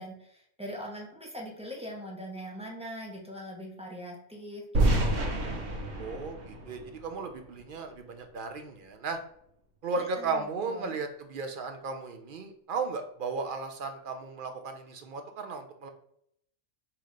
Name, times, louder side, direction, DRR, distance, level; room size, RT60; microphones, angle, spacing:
voice 1, 0.0-5.4 10.0-11.0, equal, 5° right, -2 dB, 0.8 m, -42 dB
sound 1, 4.7-7.7, right 1 dB, 75° right, 1.3 m, -29 dB
voice 2, 6.0-9.2 9.8-15.9, right 4 dB, 55° right, 6 dB, 0.6 m, -35 dB
3.8 x 2.9 x 4.8 m, 0.70 s
omnidirectional pair, 1.3 m